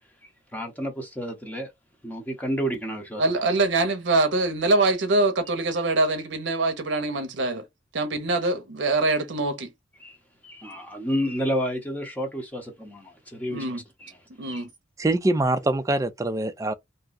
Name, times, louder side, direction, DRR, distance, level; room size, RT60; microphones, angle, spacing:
voice 1, 0.2-1.7 2.0-3.3 10.0-10.2 10.4-14.7, equal, 10° left, 0.7 m, -31 dB
voice 2, 3.2-7.7 7.9-9.7 13.5-13.8 14.4-14.7, right 2 dB, 65° right, 0.7 m, -24 dB
voice 3, 15.0-16.7, right 2 dB, 15° right, 0.3 m, -24 dB
2.7 x 2.2 x 3.8 m
head